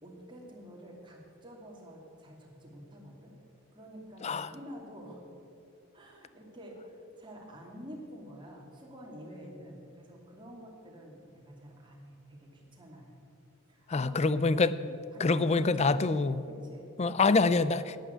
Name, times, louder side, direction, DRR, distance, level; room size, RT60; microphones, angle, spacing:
voice 1, 0.0-3.3 3.7-5.2 5.9-13.1 13.7-14.3 15.1-16.9, equal, 25° right, -1 dB, 2.5 m, -48 dB
voice 2, 13.9-14.8 15.2-16.4 17.0-18.0, left 3 dB, 30° left, 15 dB, 0.4 m, -26 dB
11.5 x 10.5 x 8.1 m, 2.6 s
head